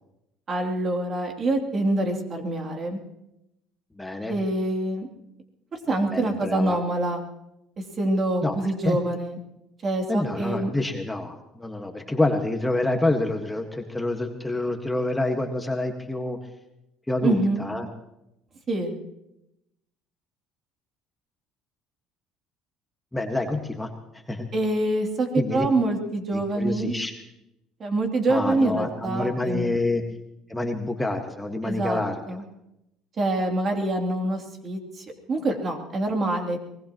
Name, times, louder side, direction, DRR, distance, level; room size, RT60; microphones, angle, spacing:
voice 1, 0.5-3.0 4.3-5.1 5.9-7.2 8.0-9.4 9.8-10.7 17.2-17.7 18.7-18.9 24.5-26.9 27.8-29.7 31.6-32.0 32.3-32.4 33.2-36.6, right 2 dB, 40° right, 3 dB, 3.0 m, -25 dB
voice 2, 4.0-4.3 5.9-6.8 8.4-8.6 8.8-9.0 10.1-16.4 17.1-17.9 23.1-23.9 24.3-24.5 25.3-25.6 26.3-27.1 28.3-30.0 30.5-32.4, left 2 dB, 10° left, 4 dB, 1.7 m, -27 dB
23.5 x 19.5 x 3.1 m, 0.86 s
supercardioid pair, 90°, 0 cm